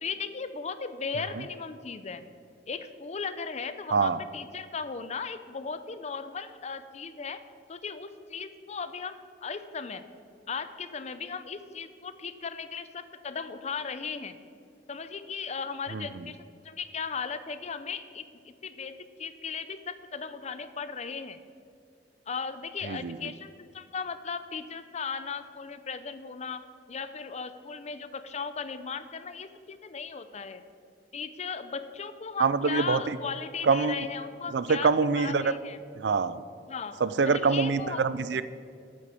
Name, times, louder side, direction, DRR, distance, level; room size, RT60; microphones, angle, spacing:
voice 1, 0.0-2.2 2.7-7.4 7.7-10.0 10.5-14.3 14.9-16.4 16.6-21.4 22.3-26.6 26.9-30.6 31.1-35.8 36.7-38.0, left 5 dB, 40° left, 12 dB, 0.6 m, -37 dB
voice 2, 32.4-33.2 33.6-34.0 34.5-35.5 36.0-36.4 37.0-38.4, right 4 dB, 75° right, 15 dB, 0.5 m, -25 dB
9.1 x 8.5 x 7.0 m, 2.4 s
head